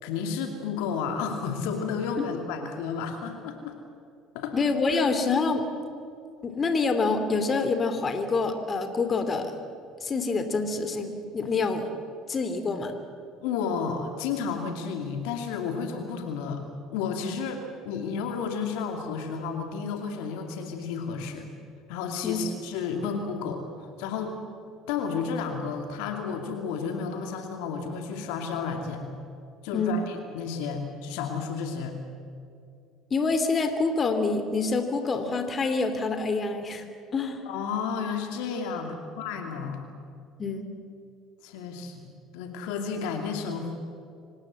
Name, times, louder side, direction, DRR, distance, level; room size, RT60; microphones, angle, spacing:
voice 1, 0.0-3.8 4.3-4.5 4.9-5.0 13.4-16.6 16.9-21.5 21.9-24.3 24.9-29.0 29.6-32.0 37.5-39.9 41.4-43.8, left 5 dB, 70° left, 5 dB, 2.5 m, -32 dB
voice 2, 4.5-5.7 6.4-9.5 10.0-11.9 12.3-12.9 22.2-22.4 29.7-30.0 33.1-36.8 37.1-37.4 40.4-40.7, left 4 dB, 35° left, 8 dB, 2.8 m, -26 dB
25.0 x 19.0 x 7.9 m, 2.4 s
hypercardioid pair, 65°, 0 cm